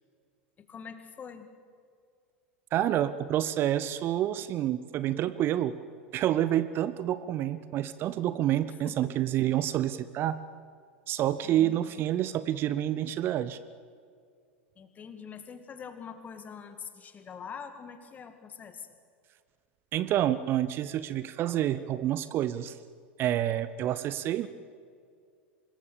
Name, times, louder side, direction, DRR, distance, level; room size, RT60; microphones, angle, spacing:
voice 1, 0.6-1.5 8.7-9.5 11.4-11.9 14.8-18.9, left 6 dB, 25° left, 9 dB, 2.1 m, -44 dB
voice 2, 2.7-5.7 6.1-10.4 11.1-13.6 19.9-22.8 23.2-24.5, right 12 dB, 35° right, 15 dB, 0.7 m, -28 dB
25.5 x 21.0 x 7.0 m, 2.2 s
figure-of-eight pair, 85°, 6 cm